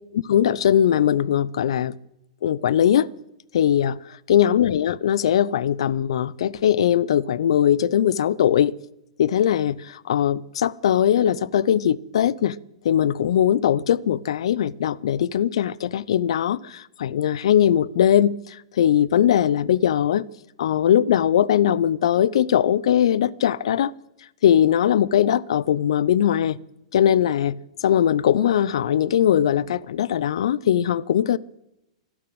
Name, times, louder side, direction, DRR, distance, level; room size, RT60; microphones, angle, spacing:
voice 1, 0.1-1.9 2.4-3.1 3.5-4.0 4.3-8.7 9.2-12.6 12.8-18.4 18.8-20.3 20.6-23.9 24.4-26.6 26.9-27.5 27.8-31.4, left 10 dB, 70° left, 0.6 m, -20 dB
12.5 x 12.0 x 8.8 m
hypercardioid pair, 115°, 3 cm